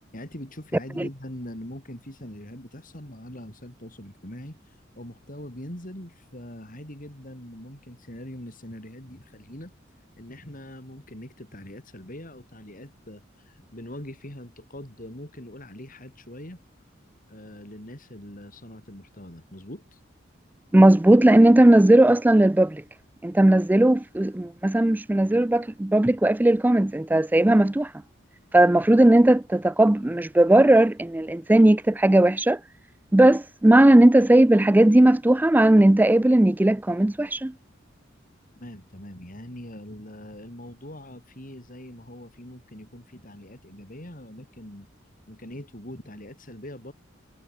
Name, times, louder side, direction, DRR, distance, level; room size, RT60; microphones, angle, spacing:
voice 1, 0.1-9.7 10.2-16.6 17.3-20.0 38.6-44.9 45.3-46.9, left 1 dB, 45° left, 6.9 m, -42 dB
voice 2, 20.7-22.8 23.2-27.9 28.5-32.6 33.1-37.5, right 1 dB, 10° right, 0.4 m, -17 dB
head